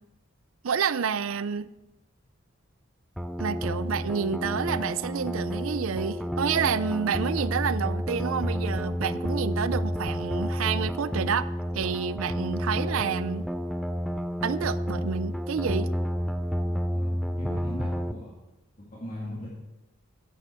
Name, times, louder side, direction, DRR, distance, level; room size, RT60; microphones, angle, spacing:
voice 1, 0.6-1.7 3.4-11.5 11.7-13.5 14.4-15.9, right 6 dB, 75° right, 16 dB, 0.5 m, -29 dB
sound 1, 3.2-18.1, equal, ahead, 0.3 m, -30 dB
voice 2, 16.9-18.3 18.9-19.5, left 1 dB, 35° left, -6 dB, 2.0 m, -39 dB
11.0 x 9.2 x 4.4 m, 0.98 s
head